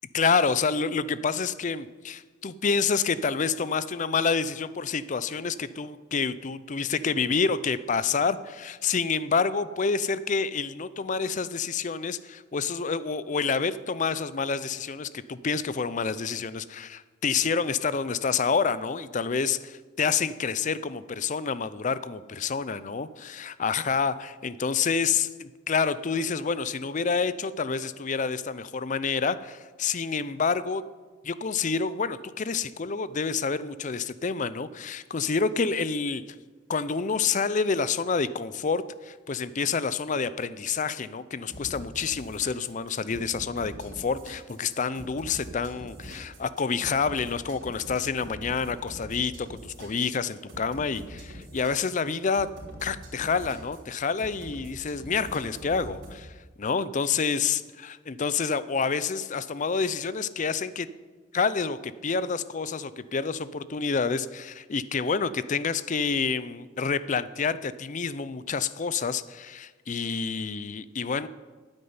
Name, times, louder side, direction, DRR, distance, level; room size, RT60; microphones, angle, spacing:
voice 1, 0.1-30.8 31.2-36.2 36.7-52.5 52.8-56.3 56.6-60.9 61.3-71.3, left 5 dB, 40° left, 16 dB, 0.5 m, -28 dB
sound 1, 41.5-56.2, equal, 70° right, 3.6 m, -44 dB
9.5 x 8.9 x 9.5 m, 1.4 s
head